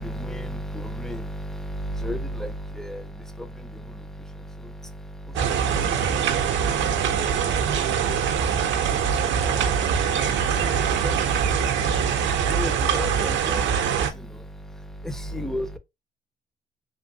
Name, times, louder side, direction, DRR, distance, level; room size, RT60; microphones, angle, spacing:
voice 1, 0.0-3.1 3.4-3.5 4.6-4.7 5.4-5.8 6.0-6.3 7.2-7.8 9.3-9.7 10.3-11.2 11.7-11.8 12.4-14.3 15.0-15.8, equal, ahead, 0.4 m, -33 dB
sound 1, 5.4-14.1, right 7 dB, 70° right, 0.5 m, -23 dB
3.0 x 2.5 x 2.6 m
cardioid pair, 90°, 20 cm